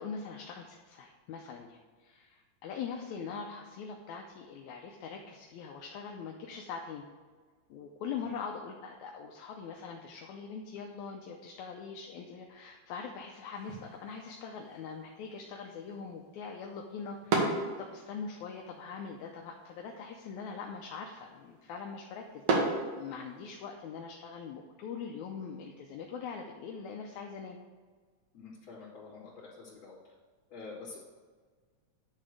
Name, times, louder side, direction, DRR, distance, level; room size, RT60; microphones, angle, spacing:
voice 1, 0.0-7.0 7.7-27.6, left 5 dB, 80° left, 2 dB, 1.9 m, -42 dB
sound 1, 13.5-23.6, right 3 dB, 60° right, 2.2 m, -37 dB
voice 2, 28.3-30.0 30.5-31.0, left 4 dB, 40° left, -8 dB, 3.3 m, -47 dB
10.5 x 3.7 x 6.4 m, 1.5 s
omnidirectional pair, 3.6 m